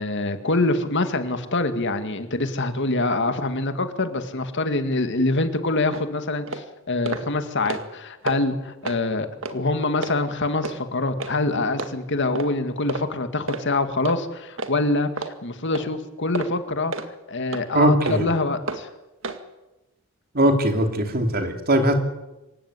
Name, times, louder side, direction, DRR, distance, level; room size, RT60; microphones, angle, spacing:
voice 1, 0.0-15.1 15.4-16.9 17.3-18.9, left 2 dB, 60° left, 9 dB, 2.1 m, -25 dB
sound 1, 5.9-6.0 6.5-6.6 7.1-7.2 7.5-7.9 8.3-8.4 8.8-9.0 9.4-9.6 10.0-10.1 10.6-10.8 11.2-11.3 11.8-11.9 12.3-12.5 12.9-13.1 13.5-13.6 14.0-14.2 14.6-14.7 15.2-15.3 15.7-15.9 16.3-16.5 16.9-17.1 17.5-17.6 18.0-18.2 18.7-18.8 19.2-19.4, right 3 dB, 65° right, 2.0 m, -30 dB
voice 2, 17.7-18.3 20.3-21.9, right 1 dB, 45° right, 5 dB, 3.3 m, -20 dB
26.0 x 16.0 x 9.6 m, 1.0 s
head